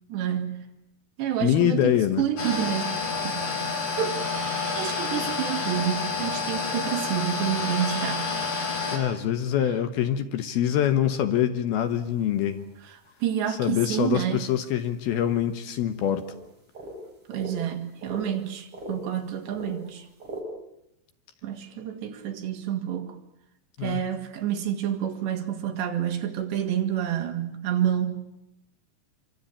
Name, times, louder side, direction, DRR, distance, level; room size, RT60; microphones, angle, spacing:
voice 1, 0.1-0.7 1.2-2.9 3.2-3.4 4.0-8.3 13.2-14.4 17.3-20.1 21.4-23.2 23.8-28.3, right 10 dB, 70° right, 4.4 m, -29 dB
voice 2, 1.4-2.2 8.9-12.6 13.5-16.3 23.8-24.0, left 10 dB, 70° left, 2.8 m, -24 dB
sound 1, 2.4-9.0, left 4 dB, 50° left, 7.2 m, -29 dB
sound 2, 11.8-11.9 12.1-12.2 12.5-12.6 13.0-13.1 14.4-14.5 14.9-15.0 15.7-15.8 16.0-16.5 16.7-17.6 18.0-19.1 19.4-20.4, right 1 dB, 30° right, 7.1 m, -40 dB
27.5 x 25.0 x 8.7 m
omnidirectional pair, 5.2 m